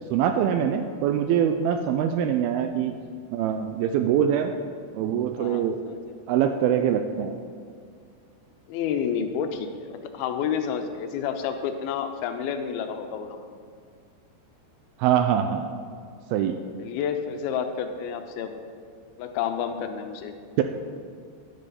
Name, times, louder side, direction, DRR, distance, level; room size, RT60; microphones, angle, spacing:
voice 1, 0.1-2.9 3.3-4.5 4.9-5.8 6.3-7.4 15.0-15.8 16.3-16.7 20.6-20.7, right 9 dB, 85° right, 7 dB, 2.2 m, -23 dB
voice 2, 5.4-6.2 8.7-13.5 16.8-18.5 19.2-20.3, left 7 dB, 80° left, 7 dB, 2.4 m, -30 dB
11.0 x 10.5 x 4.2 m, 2.1 s
omnidirectional pair, 4.8 m